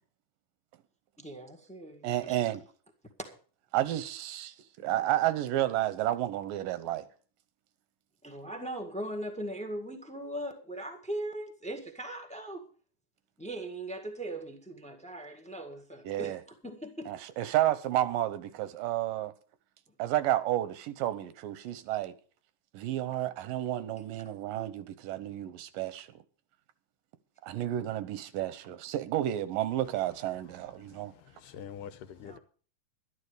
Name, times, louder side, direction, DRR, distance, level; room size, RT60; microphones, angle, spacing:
voice 1, 1.2-2.4 3.2-3.3 8.2-12.6 13.4-16.4 16.6-17.1 32.2-32.4, right 1 dB, 5° left, 0.5 m, -39 dB
voice 2, 2.0-2.6 3.7-7.1 16.1-16.4 17.1-19.3 20.0-22.1 22.7-26.1 27.4-31.1, right 13 dB, 90° right, 2.6 m, -31 dB
voice 3, 30.5-32.4, left 8 dB, 85° left, 2.5 m, -47 dB
12.0 x 11.5 x 5.0 m
omnidirectional pair, 3.8 m